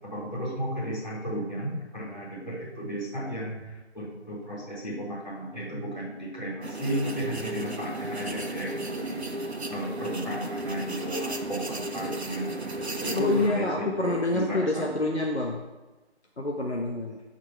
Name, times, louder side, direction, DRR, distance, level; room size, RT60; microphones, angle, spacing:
voice 1, 0.0-14.9, right 1 dB, 40° left, -8 dB, 4.1 m, -34 dB
sound 1, 6.6-13.5, right 1 dB, 70° right, 1.2 m, -34 dB
voice 2, 13.1-15.6 16.4-17.2, left 2 dB, 75° left, 0 dB, 1.4 m, -27 dB
11.0 x 6.0 x 5.9 m, 1.1 s
figure-of-eight pair, 180°, 34 cm